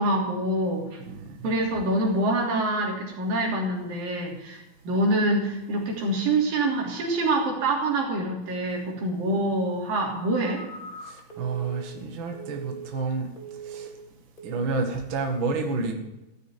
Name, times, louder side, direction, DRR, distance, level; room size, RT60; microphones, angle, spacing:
voice 1, 0.0-1.0 1.4-10.6, right 1 dB, 70° right, -1 dB, 4.8 m, -26 dB
voice 2, 1.1-1.5 11.1-13.3 13.6-13.9 14.4-15.9, right 4 dB, 45° right, 2 dB, 1.9 m, -30 dB
Telephone, 10.1-13.1 13.4-14.0 14.4-14.7, right 4 dB, 15° left, 2.1 m, -41 dB
15.5 x 6.6 x 9.5 m, 0.96 s
omnidirectional pair, 4.3 m